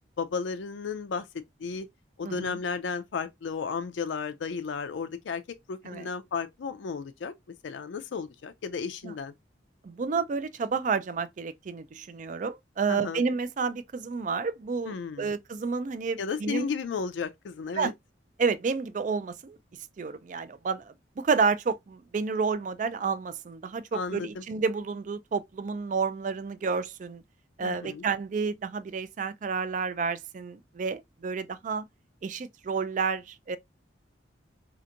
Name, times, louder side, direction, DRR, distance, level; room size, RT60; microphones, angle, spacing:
voice 1, 0.2-1.3 1.6-1.9 2.2-5.4 5.7-7.3 7.6-9.3 12.9-13.2 14.9-15.3 16.2-17.9 23.9-24.4 27.6-28.1, left 5 dB, 85° left, 0.4 m, -33 dB
voice 2, 2.2-2.6 5.9-6.1 9.0-9.1 9.8-16.7 17.8-17.9 18.4-19.6 20.0-27.2 27.6-31.8 32.2-33.6, right 5 dB, 45° right, 0.3 m, -30 dB
4.2 x 2.9 x 2.4 m
head